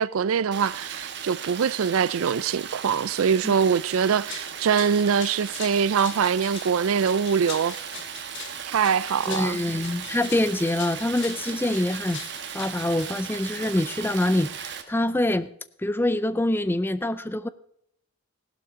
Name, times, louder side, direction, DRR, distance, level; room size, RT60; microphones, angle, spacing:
voice 1, 0.0-7.7 8.7-9.6, right 6 dB, 70° right, 0.4 m, -23 dB
Stream, 0.5-14.8, right 8 dB, 50° right, 1.2 m, -37 dB
sound 1, 4.3-13.9, left 8 dB, 55° left, 1.2 m, -42 dB
voice 2, 9.3-12.2 12.5-15.5 15.8-17.5, left 1 dB, 10° left, 0.4 m, -25 dB
16.5 x 12.0 x 3.7 m
head